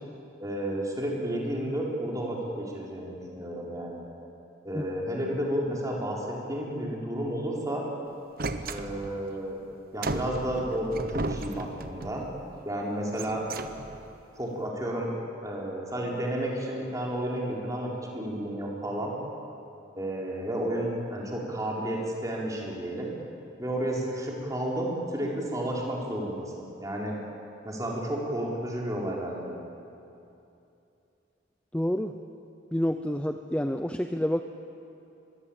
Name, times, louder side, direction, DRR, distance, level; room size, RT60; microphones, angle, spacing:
voice 1, 0.4-4.1 4.6-7.8 8.7-9.6 9.9-12.2 12.6-13.4 14.4-15.1 15.4-19.1 20.0-23.1 23.6-27.2 27.6-29.6, right 1 dB, 20° right, -2 dB, 4.5 m, -32 dB
sound 1, 8.4-9.3 10.0-12.3 13.0-14.1, right 2 dB, 50° right, 1.1 m, -35 dB
voice 2, 31.7-32.2 32.7-34.4, equal, 5° left, 7 dB, 0.6 m, -28 dB
24.5 x 21.5 x 8.9 m, 2.7 s
head